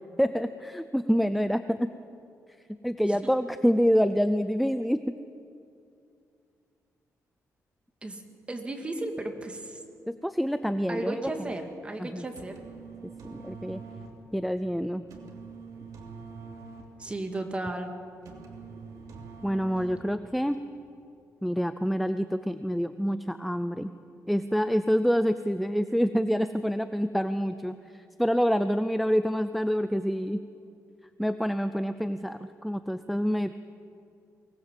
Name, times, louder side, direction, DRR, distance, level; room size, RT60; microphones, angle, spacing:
voice 1, 0.2-1.9 2.8-5.1 10.1-11.2 12.0-12.2 13.2-13.8 14.3-15.0 19.4-20.6 21.4-23.9 24.3-27.8 28.2-30.4 31.2-33.5, equal, ahead, 11 dB, 0.5 m, -27 dB
voice 2, 8.5-9.8 10.9-12.6 17.0-17.9, right 2 dB, 20° right, 4 dB, 2.2 m, -34 dB
sound 1, 12.3-20.4, right 4 dB, 80° right, 3.0 m, -45 dB
23.5 x 19.0 x 7.6 m, 2.5 s
cardioid pair, 130°, 6 cm